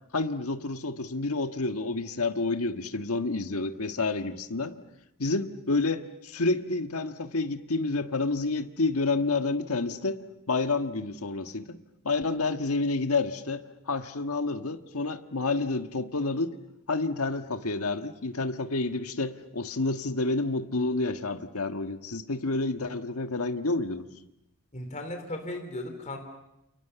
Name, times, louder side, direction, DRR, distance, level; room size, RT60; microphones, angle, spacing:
voice 1, 0.1-4.7 5.2-10.2 10.5-11.8 12.0-16.6 16.9-24.1, left 3 dB, 75° left, 8 dB, 1.6 m, -29 dB
voice 2, 24.7-26.2, left 1 dB, 35° left, 5 dB, 3.4 m, -36 dB
29.5 x 28.5 x 6.9 m, 0.85 s
head